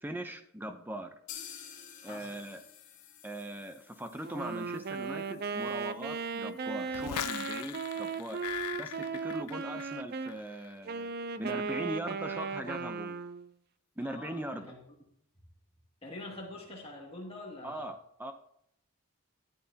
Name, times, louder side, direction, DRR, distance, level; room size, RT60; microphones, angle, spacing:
voice 1, 0.0-1.1 2.0-2.6 3.2-8.4 8.8-11.1 11.4-13.2 14.0-14.7 17.6-18.3, right 1 dB, 10° right, 7 dB, 0.7 m, -40 dB
sound 1, 1.3-9.0 9.3-9.4 9.7-9.8 10.2-10.3, left 9 dB, 55° left, 3.1 m, -53 dB
Wind instrument woodwind instrument, 4.2-10.3 10.8-13.5, right 5 dB, 45° right, 0.5 m, -37 dB
sound 2, 6.9-10.0 10.3-10.7, left 12 dB, 90° left, 0.3 m, -40 dB
voice 2, 14.0-14.8 16.0-17.9, left 2 dB, 25° left, -2 dB, 2.2 m, -45 dB
12.5 x 12.0 x 2.9 m, 0.72 s
head